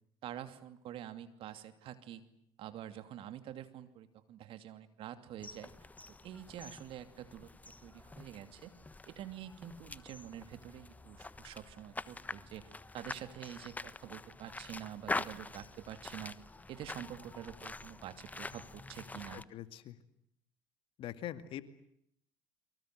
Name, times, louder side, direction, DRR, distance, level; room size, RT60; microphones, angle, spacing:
voice 1, 0.2-2.2 2.6-5.7 6.1-7.5 7.8-8.7 9.0-16.4 16.7-19.4, right 11 dB, 60° right, 10 dB, 2.8 m, -47 dB
sound 1, 5.4-19.4, left 3 dB, 15° left, 1.2 m, -45 dB
voice 2, 19.3-20.0 21.0-21.6, left 12 dB, 60° left, 11 dB, 2.3 m, -43 dB
30.0 x 24.0 x 8.0 m, 0.73 s
hypercardioid pair, 70°, 10 cm